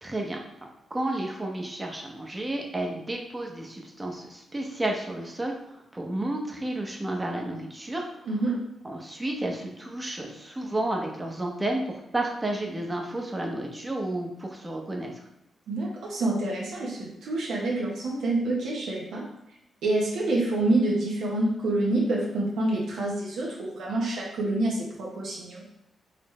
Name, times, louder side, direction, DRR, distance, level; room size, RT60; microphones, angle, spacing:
voice 1, 0.0-8.3 8.8-15.1, right 1 dB, 20° right, 1 dB, 0.8 m, -32 dB
voice 2, 8.3-8.6 15.7-19.2 19.8-25.6, right 2 dB, 85° right, -4 dB, 0.9 m, -27 dB
4.1 x 3.2 x 3.1 m, 0.82 s
cardioid pair, 85°, 0 cm